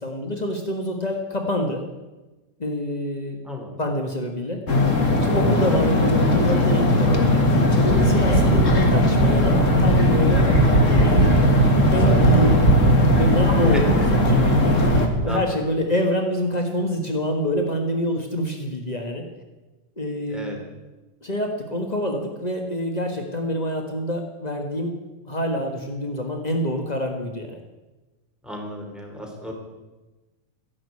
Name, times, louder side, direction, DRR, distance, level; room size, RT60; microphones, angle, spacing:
voice 1, 0.0-1.8 2.6-3.4 3.8-4.6 5.2-7.5 7.8-10.5 11.1-11.3 11.9-12.6 13.1-14.4 15.2-19.2 20.0-20.6 21.2-24.9 25.3-27.6, equal, 60° left, 3 dB, 0.4 m, -26 dB
voice 2, 3.4-3.8 8.3-8.7 13.7-13.8 15.3-15.6 20.3-20.6 28.4-29.5, left 1 dB, ahead, 1 dB, 3.3 m, -33 dB
sound 1, 4.7-15.1, left 2 dB, 30° left, 1.7 m, -19 dB
sound 2, 7.9-15.3, right 3 dB, 30° right, 1.5 m, -21 dB
14.5 x 11.0 x 8.4 m, 1.2 s
omnidirectional pair, 3.4 m